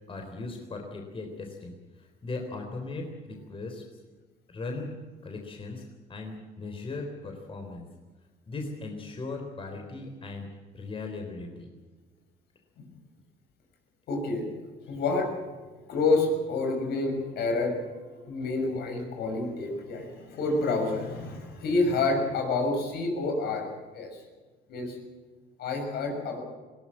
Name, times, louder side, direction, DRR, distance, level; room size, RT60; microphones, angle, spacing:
voice 1, 0.1-3.8 4.5-4.9 5.2-5.8 6.1-7.9 8.5-10.5 10.7-11.7, left 3 dB, 30° left, 3 dB, 3.8 m, -38 dB
voice 2, 14.1-14.5 14.9-15.3 15.9-24.2 24.7-25.0 25.6-26.4, left 3 dB, 70° left, 3 dB, 6.4 m, -28 dB
20.5 x 18.5 x 7.6 m, 1.3 s
cardioid pair, 110°, 17 cm